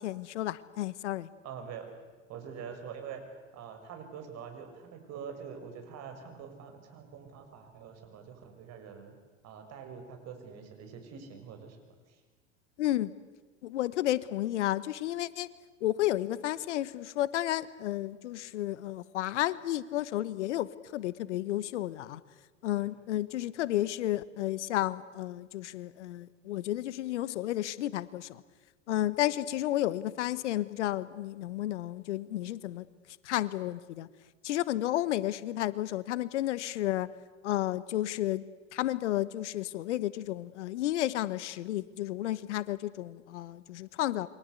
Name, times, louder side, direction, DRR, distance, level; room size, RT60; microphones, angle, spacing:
voice 1, 0.0-1.3 12.8-13.1 13.6-15.5 15.8-22.2 22.6-28.4 28.9-32.8 33.2-34.1 34.4-37.1 37.4-38.4 38.7-44.3, left 14 dB, 70° left, 18 dB, 1.1 m, -32 dB
voice 2, 1.4-1.9 2.3-3.2 3.5-9.2 9.4-11.8 22.8-22.9, right 7 dB, 45° right, 6 dB, 6.5 m, -45 dB
28.5 x 24.0 x 8.3 m, 1.3 s
hypercardioid pair, 85°, 37 cm